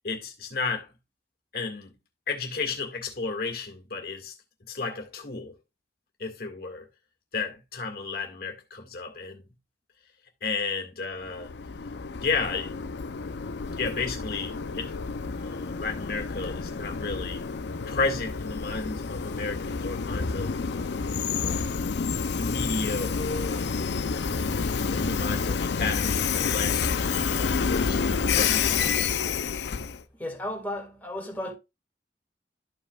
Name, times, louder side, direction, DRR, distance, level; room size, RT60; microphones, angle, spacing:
voice 1, 0.0-0.9 1.5-2.0 2.3-4.3 4.6-5.6 6.2-6.9 7.3-9.4 10.4-11.5 12.2-12.8 13.8-14.9 15.4-17.5 17.9-20.6 21.3-21.9 22.4-23.7 24.9-28.9, left 4 dB, 60° left, 2.0 m, -33 dB
Train, 11.2-30.0, left 5 dB, 75° left, 0.5 m, -29 dB
voice 2, 30.2-31.5, left 1 dB, 10° left, 2.1 m, -34 dB
13.5 x 4.9 x 2.4 m
head